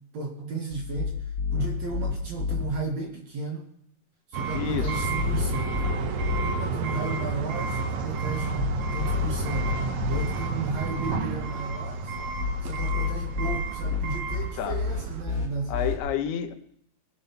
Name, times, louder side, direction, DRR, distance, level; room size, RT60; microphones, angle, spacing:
voice 1, 0.1-3.7 4.3-5.8 6.4-8.6 8.9-9.7 10.1-12.3 12.6-15.7, right 4 dB, 50° right, 1 dB, 2.2 m, -34 dB
sound 1, 0.7-2.6 4.5-6.4 8.3-10.2 12.1-15.9, left 5 dB, 30° left, 2.0 m, -30 dB
sound 2, 4.3-15.2, right 4 dB, 85° right, 1.6 m, -31 dB
voice 2, 4.5-5.1 14.6-14.8 15.7-16.5, left 9 dB, 75° left, 8 dB, 2.8 m, -30 dB
22.0 x 7.8 x 5.8 m, 0.70 s
omnidirectional pair, 5.1 m